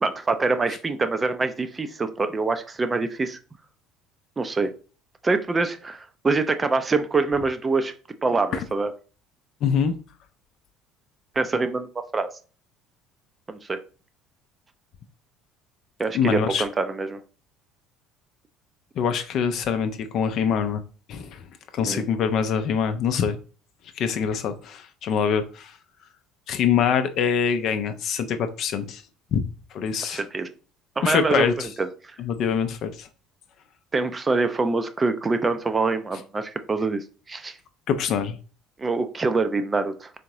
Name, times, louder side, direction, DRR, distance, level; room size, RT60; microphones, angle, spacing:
voice 1, 0.0-3.4 4.4-4.7 5.2-7.9 8.2-8.9 11.4-12.3 13.5-13.8 16.0-17.2 21.8-22.0 30.1-30.5 31.0-32.2 33.9-37.6 38.8-40.1, right 3 dB, 20° right, 9 dB, 0.4 m, -25 dB
voice 2, 9.6-9.9 16.1-16.6 19.0-20.8 21.1-21.4 21.7-23.4 24.0-25.7 26.5-29.0 29.3-29.4 29.7-30.2 31.0-31.7 32.2-33.1 37.9-38.4, left 7 dB, 50° left, 8 dB, 0.5 m, -24 dB
3.8 x 3.4 x 2.8 m, 0.37 s
figure-of-eight pair, 60°, 0 cm